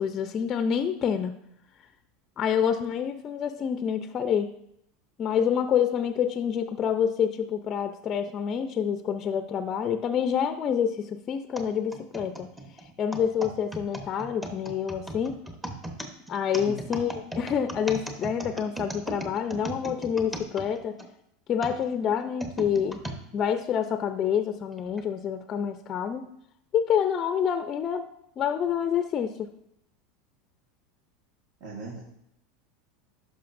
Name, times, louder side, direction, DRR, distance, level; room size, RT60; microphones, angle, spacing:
voice 1, 0.0-1.3 2.4-4.5 5.2-12.5 13.0-15.4 16.3-21.0 21.5-23.0 23.3-26.3 26.7-28.1 28.4-29.5, left 8 dB, 35° left, 9 dB, 0.5 m, -27 dB
sound 1, 11.6-21.1 21.6-23.2 23.8-23.9 24.8-25.0, right 1 dB, 5° right, 1.0 m, -37 dB
voice 2, 16.6-17.0 31.6-32.0, right 2 dB, 60° right, -4 dB, 1.6 m, -39 dB
11.5 x 5.5 x 2.6 m, 0.76 s
hypercardioid pair, 105°, 0 cm